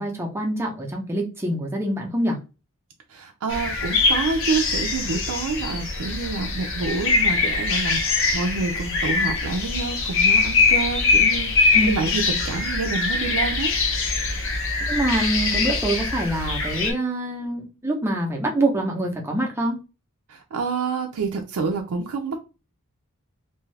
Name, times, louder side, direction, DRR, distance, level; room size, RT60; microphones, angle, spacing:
voice 1, 0.0-2.4 11.7-12.1 14.9-19.8, right 1 dB, 10° right, 0 dB, 0.6 m, -25 dB
voice 2, 3.1-8.0 8.3-11.5 11.9-13.7 20.3-22.4, right 4 dB, 85° right, 2 dB, 0.4 m, -28 dB
sound 1, 3.5-16.9, left 4 dB, 60° left, 0.7 m, -23 dB
2.6 x 2.3 x 3.2 m, 0.31 s
head